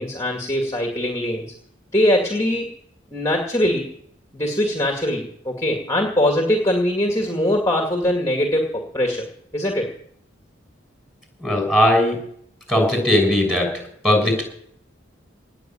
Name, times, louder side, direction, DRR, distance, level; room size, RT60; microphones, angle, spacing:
voice 1, 0.0-1.5 1.9-2.7 3.1-3.9 4.3-9.2 9.5-9.9, left 1 dB, 15° left, 1 dB, 2.2 m, -21 dB
voice 2, 11.4-12.2 12.7-13.7 14.0-14.4, left 1 dB, ahead, 2 dB, 6.2 m, -18 dB
19.0 x 6.7 x 9.1 m, 0.66 s
head